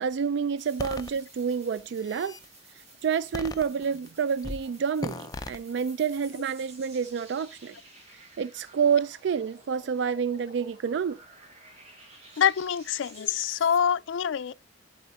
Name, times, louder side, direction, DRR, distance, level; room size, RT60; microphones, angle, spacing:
voice 1, 0.0-2.4 3.0-7.8 8.4-11.2, right 6 dB, 65° right, 0.3 m, -28 dB
sound 1, 0.6-13.8, right 2 dB, 35° right, 2.0 m, -53 dB
sound 2, 0.8-1.1 1.8-2.4 3.3-4.1 4.4-4.6 5.0-5.6, left 2 dB, 20° left, 0.5 m, -37 dB
voice 2, 12.4-14.5, left 8 dB, 75° left, 0.4 m, -25 dB
11.5 x 4.3 x 3.9 m
head